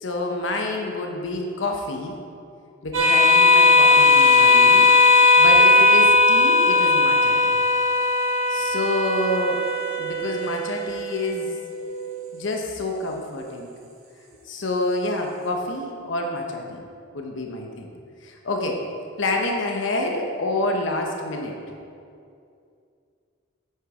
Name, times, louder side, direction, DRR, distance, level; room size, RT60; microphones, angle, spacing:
voice 1, 0.0-2.2 2.8-7.5 8.5-9.7 10.0-11.6 12.3-13.7 14.5-16.9 17.1-17.9 18.2-18.9 19.2-21.6, left 2 dB, 65° left, 2 dB, 0.9 m, -28 dB
sound 1, 2.9-11.9, left 3 dB, 85° right, 2.0 m, -17 dB
9.1 x 6.6 x 4.9 m, 2.4 s
head